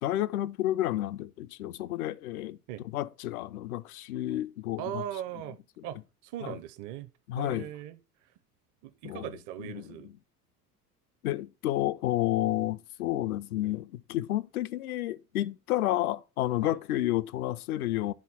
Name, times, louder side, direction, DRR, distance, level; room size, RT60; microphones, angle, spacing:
voice 1, 0.0-2.6 2.9-5.0 5.8-5.9 6.4-6.6 7.3-7.7 9.0-9.3 9.6-10.1 11.2-18.1, left 14 dB, 65° left, 0.6 m, -31 dB
voice 2, 4.8-5.6 5.8-6.0 6.2-7.1 7.4-8.0 8.8-10.1 16.6-16.8, right 11 dB, 40° right, 0.6 m, -39 dB
9.7 x 4.1 x 4.1 m
figure-of-eight pair, 65°, 47 cm